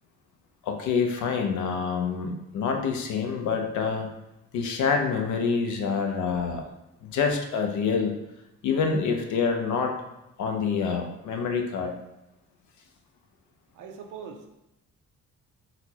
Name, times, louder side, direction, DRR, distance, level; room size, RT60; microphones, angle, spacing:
voice 1, 0.6-4.1 4.5-6.6 7.0-8.1 8.6-9.9 10.4-11.9, left 5 dB, 75° left, 4 dB, 0.6 m, -26 dB
voice 2, 13.7-14.5, right 6 dB, 80° right, 4 dB, 0.6 m, -41 dB
4.0 x 2.1 x 2.8 m, 0.90 s
cardioid pair, 90°, 30 cm